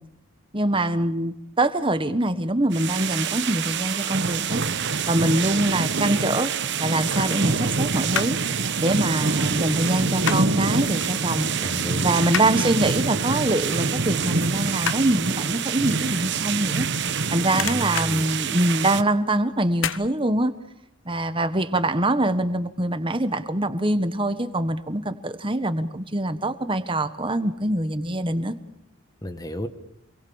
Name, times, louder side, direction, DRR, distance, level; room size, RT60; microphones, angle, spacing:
voice 1, 0.5-4.6 5.1-6.5 6.8-8.4 8.8-11.5 12.0-16.9 17.3-20.5 21.0-28.6, right 1 dB, 25° right, 11 dB, 1.5 m, -24 dB
sound 1, 2.7-19.0, right 5 dB, 55° right, 1.2 m, -26 dB
sound 2, 7.1-8.5 8.8-10.7 11.0-11.2 11.5-17.2 17.5-19.1 19.7-20.1 20.5-20.6, left 8 dB, 65° left, 1.1 m, -33 dB
voice 2, 11.6-12.3 17.6-18.3 29.2-29.7, left 1 dB, 20° left, 9 dB, 1.8 m, -32 dB
27.5 x 22.5 x 7.3 m, 0.81 s
head